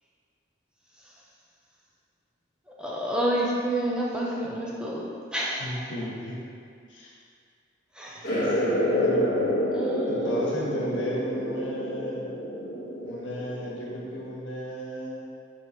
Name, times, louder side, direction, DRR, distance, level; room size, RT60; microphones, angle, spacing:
voice 1, 2.8-5.6 8.0-8.3 9.7-11.1, right 1 dB, 5° right, -5 dB, 0.7 m, -30 dB
voice 2, 5.6-6.4 6.9-7.1 8.3-9.4 10.1-12.3 13.0-15.2, equal, 90° left, -4 dB, 1.3 m, -34 dB
sound 1, 8.2-14.4, equal, 50° left, 1.4 m, -28 dB
6.9 x 4.9 x 3.1 m, 2.2 s
head